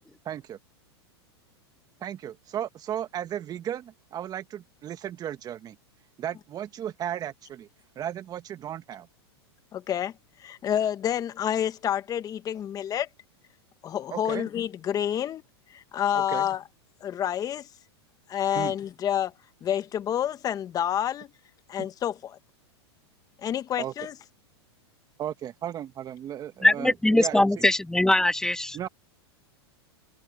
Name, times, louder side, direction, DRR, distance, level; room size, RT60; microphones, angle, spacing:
voice 1, 0.3-0.6 2.0-5.8 6.2-7.7 8.0-9.1 14.1-14.5 16.1-16.5 18.6-18.8 23.8-23.9 25.2-27.5 28.7-28.9, right 10 dB, 25° right, 1.8 m, -35 dB
voice 2, 9.7-10.1 10.4-13.1 13.8-15.4 15.7-16.6 17.0-17.7 18.3-19.3 19.6-21.3 21.7-22.4 23.4-24.1, left 10 dB, 25° left, 1.5 m, -28 dB
voice 3, 26.6-28.9, left 1 dB, 5° left, 2.2 m, -22 dB
hypercardioid pair, 130°, 14 cm